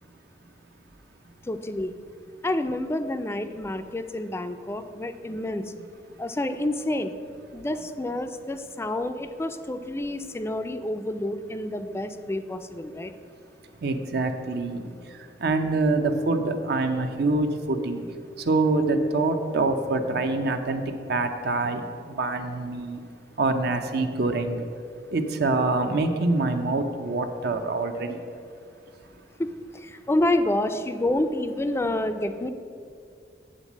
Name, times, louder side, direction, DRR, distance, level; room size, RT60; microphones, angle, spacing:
voice 1, 1.5-1.9 2.4-5.7 6.2-7.1 7.5-13.1 29.4-32.5, left 1 dB, 15° left, 9 dB, 0.4 m, -28 dB
voice 2, 13.8-14.9 15.4-18.0 18.5-20.8 21.1-21.8 22.1-23.0 23.4-24.6 25.1-28.2, right 3 dB, 65° right, 7 dB, 0.7 m, -25 dB
8.9 x 4.0 x 7.2 m, 2.3 s
head